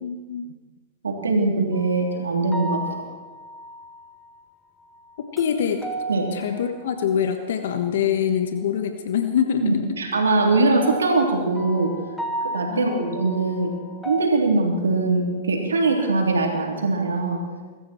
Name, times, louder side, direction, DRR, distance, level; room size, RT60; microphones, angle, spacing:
voice 1, 0.0-0.4 5.3-5.8 6.3-9.6 12.7-13.0, left 8 dB, 70° left, 7 dB, 1.2 m, -24 dB
voice 2, 1.0-2.8 6.1-6.2 9.6-11.9 12.5-13.7 14.0-17.4, right 3 dB, 90° right, 1 dB, 3.4 m, -21 dB
sound 1, 1.7-2.1 2.5-4.3 4.8-7.7 10.1-14.2, right 2 dB, ahead, 1.9 m, -35 dB
23.0 x 13.5 x 4.5 m, 1.3 s
hypercardioid pair, 110°, 0 cm